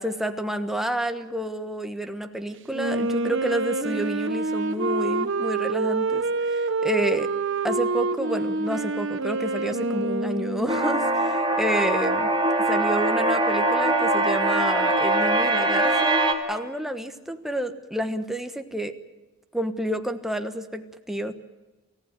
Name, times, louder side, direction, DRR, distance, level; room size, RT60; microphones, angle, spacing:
voice 1, 0.0-7.3 7.6-12.3 12.7-19.0 19.5-21.3, right 1 dB, ahead, 6 dB, 1.3 m, -29 dB
Wind instrument woodwind instrument, 2.7-11.3, right 3 dB, 65° right, 1.3 m, -27 dB
sound 1, 10.7-16.3, right 2 dB, 20° right, 2.8 m, -22 dB
28.5 x 15.0 x 8.9 m, 1.2 s
head